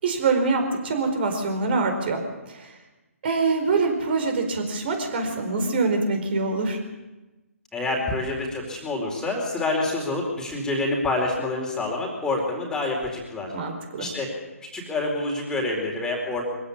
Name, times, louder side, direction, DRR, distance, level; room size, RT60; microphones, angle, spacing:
voice 1, 0.0-2.2 2.5-2.7 3.2-6.8 13.5-14.1, right 3 dB, 45° right, 5 dB, 4.6 m, -24 dB
voice 2, 7.7-13.5 14.0-14.3 14.7-16.4, left 2 dB, 5° left, -1 dB, 4.3 m, -27 dB
23.0 x 16.5 x 8.5 m, 1.1 s
figure-of-eight pair, 140°, 8 cm